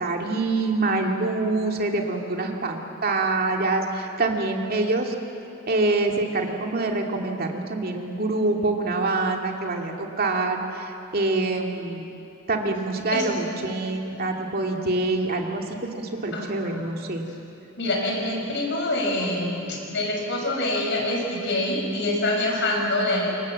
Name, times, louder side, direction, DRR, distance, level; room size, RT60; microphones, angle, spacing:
voice 1, 0.0-5.1 5.7-12.1 12.5-17.2, right 2 dB, 50° right, 2 dB, 2.4 m, -25 dB
voice 2, 16.3-16.9 17.8-23.3, left 1 dB, 60° left, 0 dB, 6.5 m, -26 dB
28.0 x 26.0 x 7.6 m, 2.9 s
head